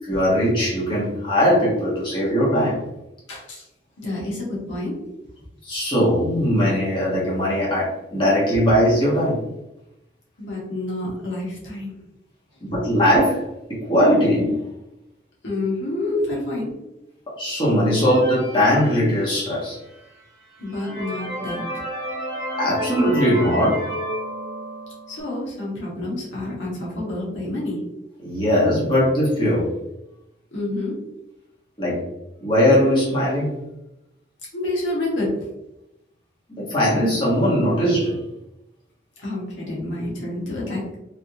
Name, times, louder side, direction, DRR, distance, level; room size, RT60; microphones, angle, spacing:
voice 1, 0.1-2.8 5.6-9.4 12.6-14.6 17.4-19.8 22.6-23.8 28.2-29.7 31.8-32.0 32.4-33.6 36.5-38.2, equal, 25° left, -8 dB, 1.2 m, -20 dB
voice 2, 3.3-3.7 4.0-5.0 10.4-12.0 15.4-16.7 20.6-21.6 25.1-27.8 30.5-31.0 34.5-35.3 39.2-41.0, left 2 dB, 85° left, -5 dB, 1.3 m, -28 dB
sound 1, 18.0-19.7 20.2-20.3 20.7-25.2, equal, 15° right, 1.0 m, -31 dB
3.3 x 2.6 x 2.8 m, 0.90 s
head